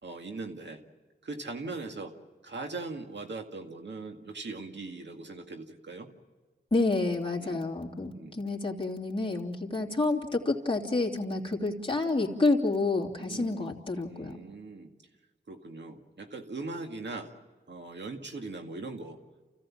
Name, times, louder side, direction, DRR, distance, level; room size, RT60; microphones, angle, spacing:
voice 1, 0.0-0.8 1.2-2.1 2.4-6.1 7.4-7.6 8.1-8.4 13.2-13.7 14.1-14.9 15.5-17.3 17.7-19.2, right 3 dB, 85° right, 4 dB, 2.0 m, -40 dB
voice 2, 6.7-14.4, left 3 dB, 30° left, 0 dB, 2.9 m, -29 dB
29.0 x 15.5 x 7.4 m, 1.4 s
wide cardioid pair, 55°, 18 cm